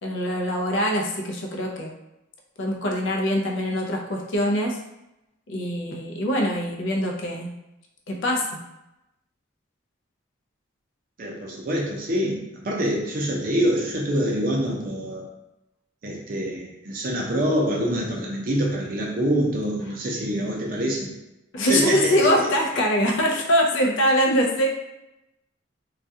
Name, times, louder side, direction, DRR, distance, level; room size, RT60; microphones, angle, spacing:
voice 1, 0.0-1.9 2.6-4.8 5.5-7.5 8.1-8.6 21.5-24.7, equal, 70° left, 0 dB, 0.4 m, -23 dB
voice 2, 11.2-15.3 16.0-21.1 21.7-22.5, equal, 45° right, -2 dB, 0.5 m, -25 dB
2.3 x 2.2 x 2.6 m, 0.91 s
head